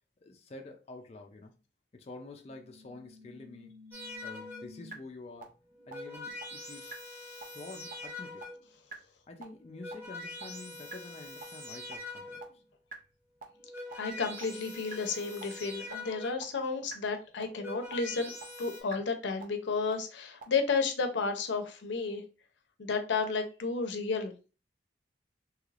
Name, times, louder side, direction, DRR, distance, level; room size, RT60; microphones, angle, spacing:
voice 1, 0.2-1.5 1.9-3.7 4.2-5.5 5.9-6.9 7.5-8.4 9.3-12.6, left 2 dB, 35° left, 0.4 m, -48 dB
sound 1, 2.5-4.9 5.4-5.5 5.9-6.0 6.4-6.5 6.9-7.0 7.4-7.5 7.9-8.0 8.4-8.5 8.9-9.0 9.4-9.5 9.9-10.0 10.4-10.5 10.9-11.0 11.4-11.5 11.9-12.0 12.4-12.5 12.9-13.0 13.4-13.5 13.9-14.0 14.4-14.5 14.9-15.0 15.4-15.5 15.9-16.0 16.4-16.5 16.9-17.0 17.4-17.5 17.9-18.0 18.4-18.5 18.9-19.0 19.4-19.5 19.9-20.0 20.4-20.5, right 3 dB, 45° right, 0.5 m, -46 dB
sound 2, 3.9-4.9 5.6-8.8 9.5-12.7 13.4-16.6 17.3-18.8, left 2 dB, 15° right, 1.0 m, -44 dB
voice 2, 13.9-18.3 18.6-22.2 22.8-24.3, left 4 dB, 85° left, 0.6 m, -32 dB
3.2 x 3.0 x 2.4 m
head